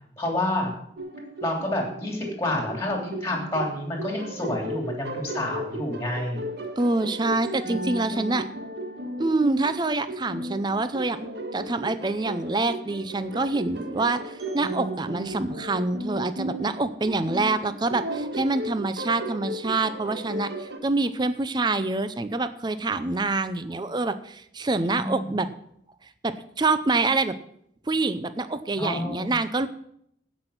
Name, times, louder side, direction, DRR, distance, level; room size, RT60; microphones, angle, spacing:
voice 1, 0.2-0.7 1.4-6.4 24.9-25.3 28.8-29.3, left 1 dB, 15° left, 1 dB, 3.1 m, -28 dB
sound 1, 1.0-20.8, right 1 dB, 65° right, 1.5 m, -35 dB
voice 2, 6.8-8.4 9.2-11.2 11.5-25.5 26.2-27.3 27.9-29.7, right 3 dB, 25° right, 12 dB, 0.6 m, -26 dB
15.5 x 6.2 x 5.9 m, 0.72 s
head